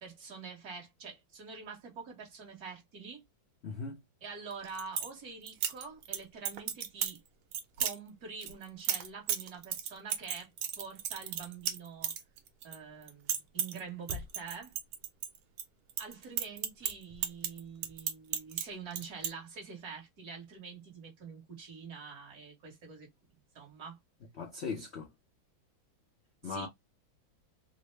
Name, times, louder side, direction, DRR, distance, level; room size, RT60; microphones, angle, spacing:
voice 1, 0.0-3.2 4.2-7.2 7.8-12.1 12.6-14.7 16.0-24.0 26.4-26.7, right 5 dB, 50° right, 1.6 m, -46 dB
voice 2, 3.6-4.0 24.4-25.1 26.4-26.7, left 5 dB, 70° left, 0.6 m, -38 dB
sound 1, 4.5-5.1 5.5-6.2 6.4-7.2 7.5-8.0 8.4-12.8 13.0-13.8 14.1-15.6 15.9-18.6 18.9-19.3, right 9 dB, 85° right, 1.5 m, -34 dB
3.9 x 2.0 x 3.1 m
omnidirectional pair, 2.2 m